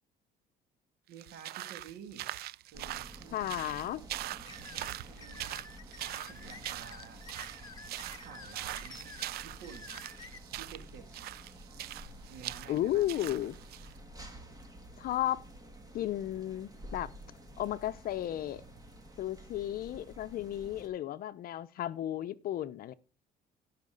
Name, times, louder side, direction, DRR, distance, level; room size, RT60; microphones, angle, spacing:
sound 1, 1.1-13.9, right 15 dB, 65° right, 0.4 m, -42 dB
voice 1, 1.1-2.3 2.6-4.1 4.6-5.6 6.2-7.2 8.2-9.2 9.4-10.0 10.5-11.1 12.3-13.4, right 7 dB, 85° right, 2.4 m, -51 dB
sound 2, 2.7-20.9, right 1 dB, 20° right, 2.5 m, -51 dB
voice 2, 3.3-4.0 12.7-13.6 15.0-15.4 15.9-17.1 17.6-18.6 19.2-22.9, left 13 dB, 60° left, 0.6 m, -34 dB
sound 3, 4.5-10.4, left 4 dB, 25° left, 1.6 m, -50 dB
16.0 x 5.8 x 3.9 m
cardioid pair, 110°, 17 cm